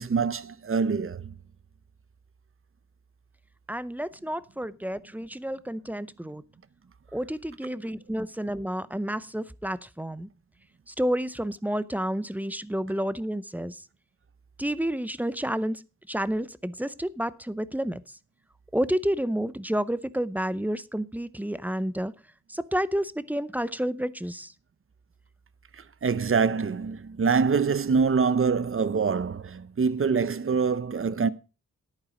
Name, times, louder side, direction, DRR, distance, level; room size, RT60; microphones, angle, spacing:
voice 1, 0.0-1.3 25.8-31.3, right 5 dB, 40° right, 0.7 m, -25 dB
voice 2, 3.7-6.4 7.1-10.3 10.9-13.8 14.6-15.8 16.1-18.0 18.7-22.1 22.5-24.5, equal, 5° right, 0.6 m, -30 dB
11.0 x 9.1 x 4.9 m
wide cardioid pair, 105°, 33 cm